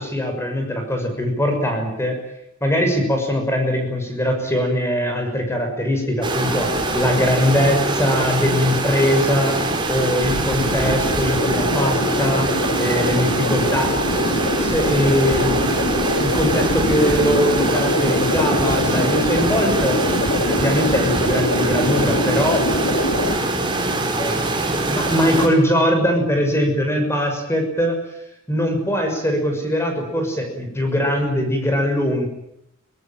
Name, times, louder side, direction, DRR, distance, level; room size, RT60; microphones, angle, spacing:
voice 1, 0.0-2.2 2.6-9.6 9.9-12.5 12.8-13.9 14.6-15.9 16.2-22.6 24.1-24.6 24.9-28.0 28.5-32.3, equal, 15° left, 4 dB, 6.3 m, -21 dB
sound 1, 6.2-25.5, right 2 dB, 25° right, 5.1 m, -23 dB
sound 2, 10.2-23.3, left 1 dB, 70° left, 2.7 m, -24 dB
25.5 x 19.0 x 9.1 m, 0.80 s
head